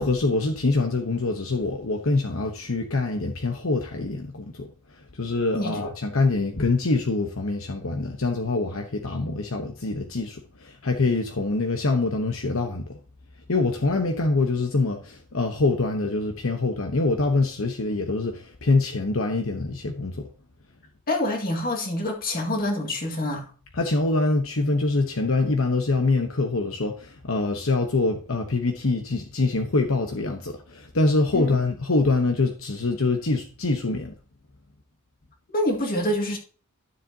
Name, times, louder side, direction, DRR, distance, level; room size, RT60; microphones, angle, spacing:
voice 1, 0.0-4.7 5.2-12.9 13.5-20.3 23.7-34.1, left 3 dB, 65° left, 1.0 m, -24 dB
voice 2, 21.1-23.5 31.3-31.5 35.5-36.4, left 1 dB, 40° left, 2.0 m, -26 dB
12.5 x 7.5 x 2.8 m
head